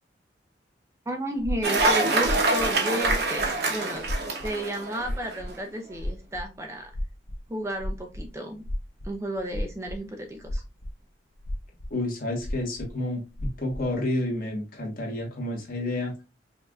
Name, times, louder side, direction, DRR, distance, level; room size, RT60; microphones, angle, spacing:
voice 1, 1.1-4.0 4.4-6.9 7.5-8.7 9.0-10.6, right 1 dB, 15° right, 3 dB, 0.5 m, -33 dB
sound 1, 1.4-2.7 3.0-3.5 3.9-4.5 5.0-5.5 5.9-6.5 6.9-8.3 8.6-10.0 10.4-10.9 11.4-12.0 12.4-12.9 13.3-13.9, left 1 dB, 70° left, 0.9 m, -32 dB
Cheering / Applause, 1.6-5.3, right 2 dB, 60° right, 0.9 m, -25 dB
voice 2, 11.9-13.2 13.6-16.1, left 1 dB, 50° left, -1 dB, 1.4 m, -30 dB
5.3 x 2.6 x 2.3 m, 0.28 s
head